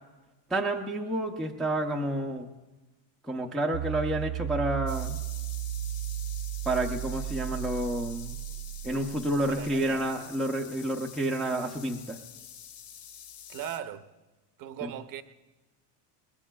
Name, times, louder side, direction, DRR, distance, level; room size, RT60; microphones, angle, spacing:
voice 1, 0.5-2.5 3.2-5.2 6.7-8.4 8.8-12.2 14.8-14.9, right 1 dB, ahead, 0.5 m, -30 dB
sound 1, 3.7-10.0, right 15 dB, 80° right, 0.5 m, -35 dB
sound 2, 4.9-13.8, left 9 dB, 85° left, 1.7 m, -47 dB
voice 2, 9.5-10.1 13.5-14.1 14.6-15.2, right 10 dB, 45° right, 0.7 m, -38 dB
23.0 x 20.0 x 2.3 m
cardioid pair, 150°, 48 cm